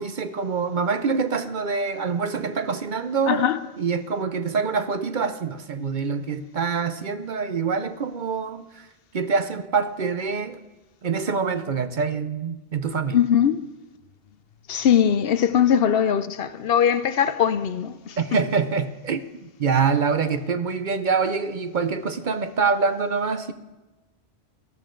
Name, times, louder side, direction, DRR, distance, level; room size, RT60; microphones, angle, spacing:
voice 1, 0.0-3.5 3.8-8.9 9.1-10.6 11.0-13.2 18.2-23.5, right 5 dB, 50° right, 0.7 m, -25 dB
voice 2, 3.3-3.6 13.1-13.6 14.7-18.2, left 8 dB, 65° left, 0.8 m, -20 dB
18.0 x 13.0 x 3.8 m
omnidirectional pair, 1.1 m